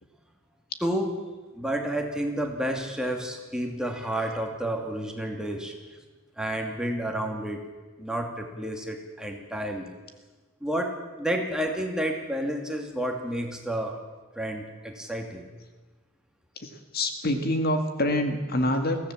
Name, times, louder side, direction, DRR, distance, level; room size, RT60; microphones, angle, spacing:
voice 1, 0.8-1.1 1.6-5.7 6.4-7.6 8.0-9.9 10.6-14.0 14.4-15.5, right 1 dB, 5° right, 2 dB, 2.5 m, -30 dB
voice 2, 16.9-19.1, left 1 dB, 50° left, 6 dB, 1.9 m, -26 dB
23.0 x 16.5 x 7.5 m, 1.3 s
head